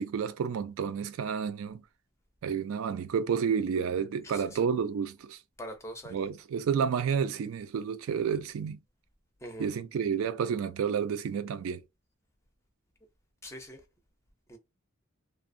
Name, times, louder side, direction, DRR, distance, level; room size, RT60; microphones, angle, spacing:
voice 1, 0.0-1.8 2.4-5.4 6.1-8.8 9.6-11.8, right 7 dB, 85° right, 0.3 m, -30 dB
voice 2, 4.2-4.6 5.6-6.2 9.4-9.7 13.4-13.8 14.5-14.6, equal, 15° left, 0.4 m, -42 dB
2.7 x 2.0 x 2.5 m
head